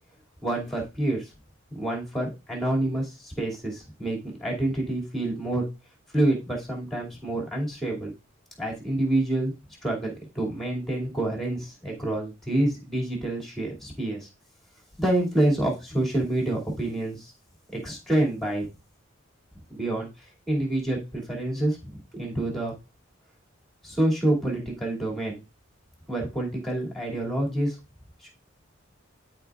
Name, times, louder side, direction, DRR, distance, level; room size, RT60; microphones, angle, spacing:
voice 1, 0.4-1.3 1.7-5.7 6.1-8.1 8.6-9.6 9.8-14.3 15.0-17.3 17.7-18.7 19.7-20.1 20.5-22.7 23.8-25.4 26.1-27.8 28.2-28.3, right 1 dB, ahead, -1 dB, 2.6 m, -27 dB
13.0 x 4.5 x 2.5 m, 0.28 s
head